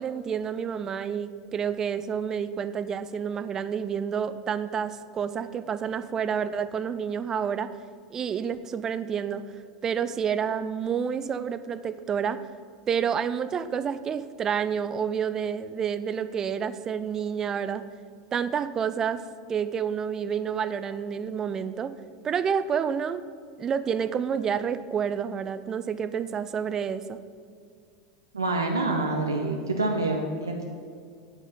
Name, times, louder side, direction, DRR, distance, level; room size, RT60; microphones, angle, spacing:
voice 1, 0.0-7.7 8.1-9.4 9.8-12.4 12.9-17.8 18.3-19.2 19.5-21.9 22.2-23.2 23.6-27.2, right 7 dB, 25° right, 14 dB, 0.4 m, -29 dB
voice 2, 28.3-30.6, right 2 dB, 80° right, 2 dB, 0.8 m, -27 dB
9.3 x 8.2 x 5.4 m, 2.2 s
figure-of-eight pair, 85°, 2 cm